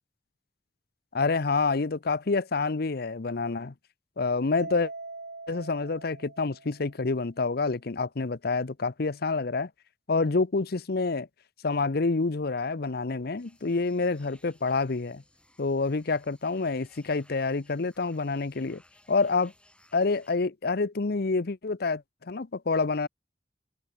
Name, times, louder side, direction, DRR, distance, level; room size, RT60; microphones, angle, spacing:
voice 1, 1.1-3.7 4.2-4.9 5.5-9.7 10.1-11.3 11.6-15.2 15.6-18.8 19.1-19.5 19.9-23.1, left 3 dB, 60° left, 0.8 m, -27 dB
Mallet percussion, 4.6-7.0, right 3 dB, 65° right, 3.8 m, -42 dB
sound 1, 13.4-20.3, left 1 dB, 5° left, 7.5 m, -61 dB
head